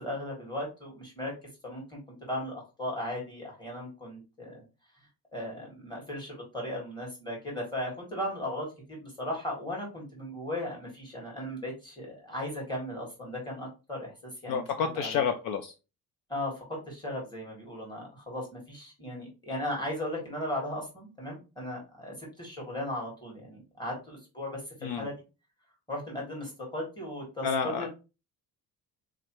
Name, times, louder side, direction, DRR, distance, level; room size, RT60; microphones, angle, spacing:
voice 1, 0.0-1.3 1.6-4.6 5.3-15.2 16.3-25.2 25.9-27.9, left 1 dB, 10° left, -2 dB, 1.7 m, -37 dB
voice 2, 14.5-15.7 24.8-25.1 27.4-27.9, left 6 dB, 60° left, 7 dB, 0.6 m, -29 dB
3.7 x 3.2 x 3.0 m, 0.29 s
cardioid pair, 160°, 37 cm